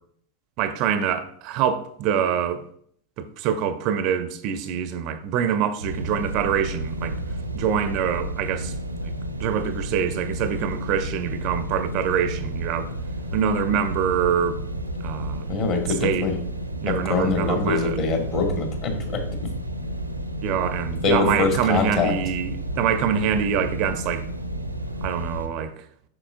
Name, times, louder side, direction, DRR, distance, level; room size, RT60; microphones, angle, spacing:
voice 1, 0.6-2.6 3.2-7.2 7.5-8.7 9.0-9.1 9.4-12.9 13.3-14.6 15.0-15.5 16.0-16.3 16.8-18.0 20.4-24.3 25.0-25.7, right 8 dB, 40° right, 0.5 m, -25 dB
sound 1, 5.8-25.5, right 1 dB, 85° right, 0.6 m, -31 dB
voice 2, 15.5-16.4 16.9-19.2 21.0-22.1, left 4 dB, 35° left, 1.6 m, -24 dB
7.7 x 6.0 x 2.5 m
figure-of-eight pair, 90°, 0 cm